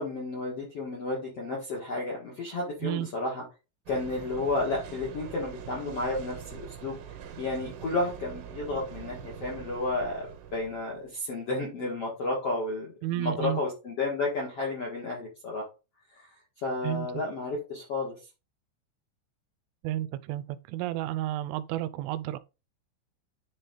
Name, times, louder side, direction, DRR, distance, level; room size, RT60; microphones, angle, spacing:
voice 1, 0.0-3.4 3.9-6.9 7.4-10.3 10.5-15.6 16.2-16.3 16.6-18.1, left 2 dB, 55° left, 1.6 m, -32 dB
sound 1, 3.9-11.1, right 8 dB, 65° right, 3.1 m, -43 dB
voice 2, 13.0-13.6 16.8-17.1 19.8-22.4, right 14 dB, 90° right, 3.1 m, -31 dB
10.5 x 4.0 x 3.8 m
omnidirectional pair, 5.6 m